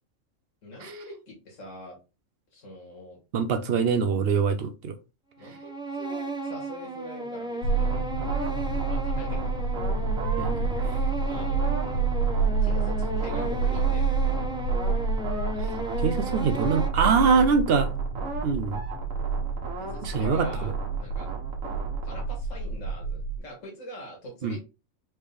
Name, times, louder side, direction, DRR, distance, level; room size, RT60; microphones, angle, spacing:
voice 1, 0.6-2.0 2.5-3.2 5.4-9.6 11.2-12.2 12.6-14.1 19.8-20.7 21.0-21.3 22.0-24.6, equal, 70° left, 1.9 m, -44 dB
voice 2, 3.3-4.9 10.4-10.8 15.6-15.7 16.0-17.9 18.4-18.8 20.0-20.7 24.4-24.6, right 5 dB, 65° right, 0.6 m, -24 dB
sound 1, 5.4-16.9, right 2 dB, 5° right, 0.5 m, -35 dB
sound 2, 7.6-23.4, right 4 dB, 85° left, 1.1 m, -28 dB
sound 3, 7.7-22.2, right 3 dB, 85° right, 1.6 m, -39 dB
4.4 x 3.3 x 3.4 m
omnidirectional pair, 1.4 m